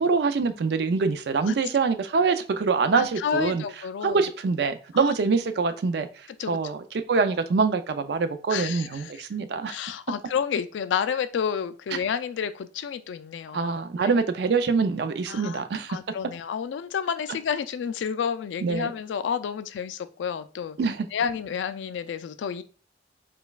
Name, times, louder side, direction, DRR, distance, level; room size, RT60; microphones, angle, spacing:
voice 1, 0.0-3.6 4.0-6.1 6.5-9.8 13.5-16.0 18.6-18.9 20.8-21.1, right 4 dB, 65° right, 0.4 m, -24 dB
voice 2, 2.9-4.2 4.9-5.1 6.4-6.6 8.5-9.2 9.7-14.1 15.3-15.6 15.9-20.8 21.1-22.6, left 7 dB, 85° left, 0.3 m, -30 dB
5.1 x 2.3 x 2.3 m
head